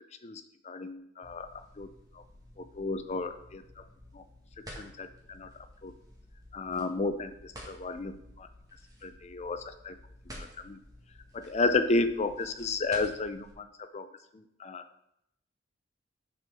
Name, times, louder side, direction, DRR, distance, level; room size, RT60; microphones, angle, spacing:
voice 1, 0.2-1.5 1.8-1.9 2.6-3.6 4.1-4.2 4.8-5.5 5.8-5.9 6.5-8.5 9.0-9.9 10.4-10.8 11.3-13.7 13.9-14.1 14.3-14.8, left 3 dB, 35° left, 10 dB, 0.5 m, -32 dB
sound 1, 1.2-13.5, equal, 20° right, 1.7 m, -51 dB
7.4 x 4.6 x 6.2 m, 0.78 s
head